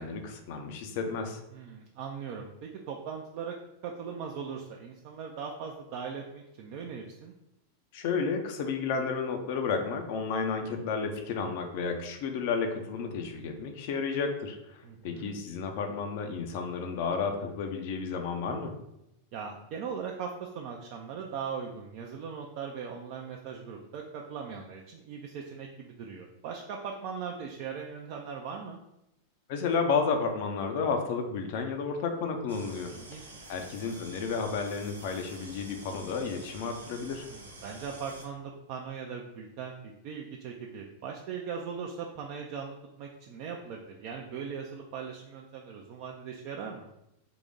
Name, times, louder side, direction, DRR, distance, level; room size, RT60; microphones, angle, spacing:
voice 1, 0.0-1.4 7.9-18.7 29.5-32.9 33.5-37.3, left 5 dB, 50° left, 5 dB, 0.6 m, -32 dB
voice 2, 1.5-3.6 3.8-7.3 14.8-15.3 19.3-28.8 32.9-33.4 37.3-46.9, right 6 dB, 45° right, 1 dB, 0.4 m, -39 dB
sound 1, 32.5-38.2, right 1 dB, 75° right, 0.9 m, -48 dB
3.9 x 2.8 x 3.7 m, 0.85 s
figure-of-eight pair, 90°, 0 cm